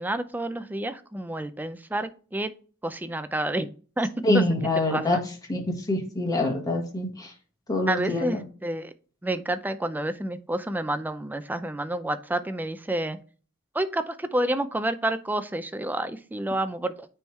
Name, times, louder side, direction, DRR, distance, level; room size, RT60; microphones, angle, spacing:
voice 1, 0.0-2.5 2.8-3.7 4.0-4.4 4.8-5.2 7.9-8.9 9.2-13.2 13.7-17.1, right 1 dB, 10° right, 11 dB, 0.4 m, -29 dB
voice 2, 4.2-5.2 5.5-7.3 7.7-8.4, left 1 dB, 15° left, 1 dB, 1.6 m, -25 dB
9.2 x 3.5 x 3.2 m, 0.39 s
head